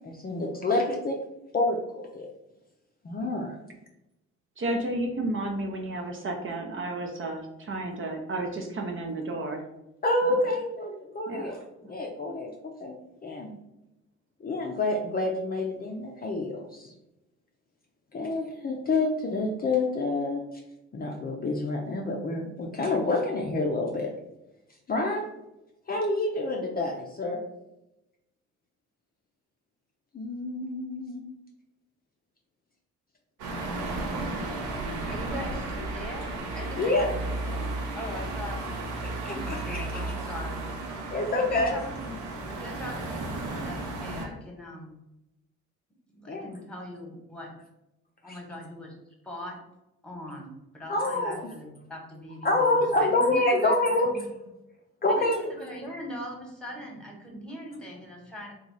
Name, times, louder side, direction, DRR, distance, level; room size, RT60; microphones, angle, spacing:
voice 1, 0.0-1.2 1.5-2.3 3.0-3.5 10.0-11.6 11.9-12.5 12.8-13.0 13.2-13.5 14.4-16.9 18.1-20.4 20.9-24.1 24.9-25.3 25.9-27.4 30.1-31.3 36.8-37.1 39.0-40.1 41.1-41.8 46.3-46.5 48.3-48.4 50.9-51.4 52.4-54.1 55.0-55.5, left 2 dB, 30° left, 0 dB, 0.5 m, -27 dB
voice 2, 4.6-9.6 10.2-10.4 11.3-11.6, right 2 dB, 45° right, 2 dB, 0.6 m, -32 dB
sound 1, 33.4-44.3, right 2 dB, 90° right, 0.8 m, -34 dB
voice 3, 35.1-37.1 37.4-37.7 37.9-38.6 39.2-40.8 41.5-42.1 42.5-44.9 46.2-47.5 48.2-48.9 49.2-49.6 50.0-54.3 55.1-58.5, equal, 5° left, -1 dB, 1.1 m, -40 dB
2.9 x 2.3 x 3.8 m, 0.91 s
cardioid pair, 90°, 30 cm